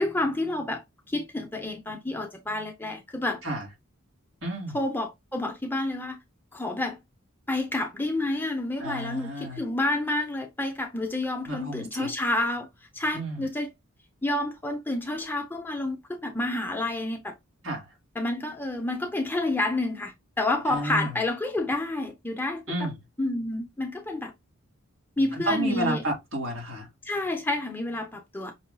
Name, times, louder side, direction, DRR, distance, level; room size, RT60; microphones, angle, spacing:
voice 1, 0.0-3.4 4.7-6.2 6.5-7.0 7.5-12.7 12.9-13.7 14.2-17.3 18.2-22.9 23.2-24.3 25.2-26.0 27.0-28.5, left 2 dB, 10° left, 0.5 m, -29 dB
voice 2, 4.4-4.8 8.8-9.6 11.5-12.1 13.1-13.4 17.6-17.9 20.7-21.1 22.7-22.9 25.3-26.9, right 1 dB, 65° right, 2.2 m, -31 dB
5.4 x 2.6 x 2.2 m
head